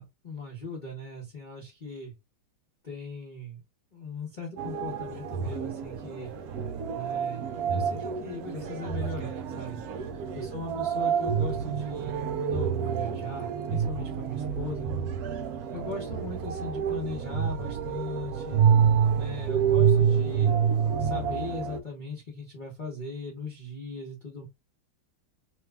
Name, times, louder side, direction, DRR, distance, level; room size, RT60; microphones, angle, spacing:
voice 1, 0.0-2.1 2.8-3.6 3.9-6.3 6.9-9.8 10.3-14.9 15.7-18.6 19.2-20.6 21.0-24.5, left 2 dB, 40° left, 0.7 m, -39 dB
sound 1, 4.6-21.8, right 7 dB, 70° right, 0.9 m, -28 dB
3.0 x 2.3 x 3.2 m
omnidirectional pair, 2.1 m